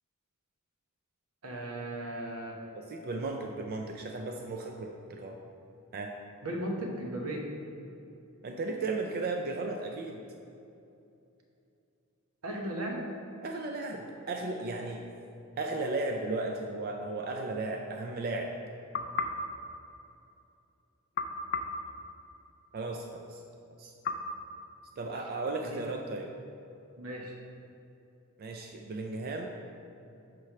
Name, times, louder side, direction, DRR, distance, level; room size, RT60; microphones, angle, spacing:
voice 1, 1.4-2.6 6.4-7.5 12.4-13.0 25.6-25.8 27.0-27.4, right 1 dB, 85° right, 0 dB, 1.0 m, -36 dB
voice 2, 2.7-5.4 5.9-6.1 8.4-10.2 13.4-15.0 15.6-18.5 22.7-23.4 23.8-23.9 25.0-26.3 28.4-29.5, right 3 dB, 45° right, 2 dB, 0.4 m, -35 dB
sound 1, 18.9-20.5 21.1-22.8 24.0-25.4, left 4 dB, 45° left, 0.4 m, -37 dB
6.0 x 3.2 x 5.7 m, 2.7 s
head